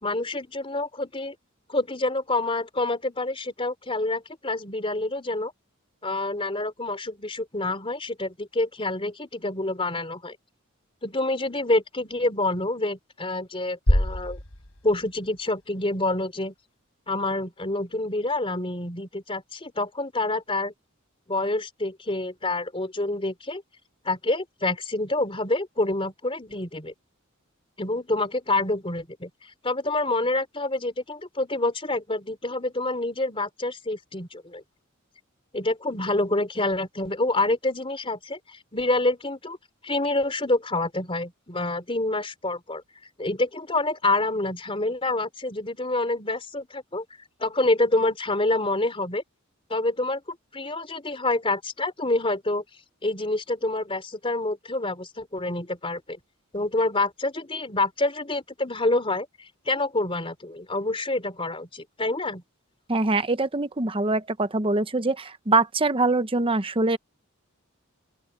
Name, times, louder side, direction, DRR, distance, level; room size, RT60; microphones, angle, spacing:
voice 1, 0.0-1.3 1.7-5.5 6.0-10.4 11.0-14.4 14.8-16.5 17.1-20.7 21.3-23.6 24.0-26.9 27.8-34.6 35.5-39.6 39.8-42.8 43.2-47.0 47.4-49.2 49.7-52.6 53.0-56.2 56.5-59.3 59.6-62.4, left 2 dB, 25° left, 3.5 m, -27 dB
sound 1, 13.9-15.9, left 1 dB, 80° left, 4.1 m, -26 dB
voice 2, 62.9-67.0, right 3 dB, 25° right, 1.0 m, -23 dB
open air
head